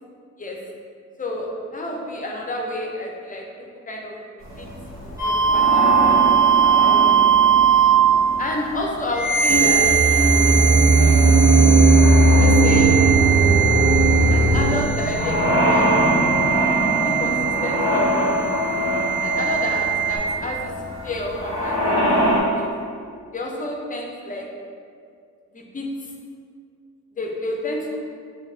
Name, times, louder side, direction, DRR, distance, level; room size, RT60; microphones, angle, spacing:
voice 1, 1.2-3.5 3.9-4.7 5.0-6.2 6.8-7.2 8.4-9.9 10.9-11.4 12.4-13.0 14.3-16.4 17.0-18.2 19.2-20.7 21.0-22.7 23.3-24.5 25.5-25.9 27.2-28.0, left 1 dB, 25° left, 0 dB, 0.6 m, -30 dB
sound 1, 4.4-22.4, equal, 65° right, 1.4 m, -25 dB
sound 2, 5.2-8.2 9.1-20.2, right 8 dB, 15° right, 1.5 m, -20 dB
sound 3, 9.5-14.8, right 2 dB, 40° right, 0.5 m, -15 dB
5.1 x 2.8 x 2.7 m, 2.2 s
cardioid pair, 90°, 30 cm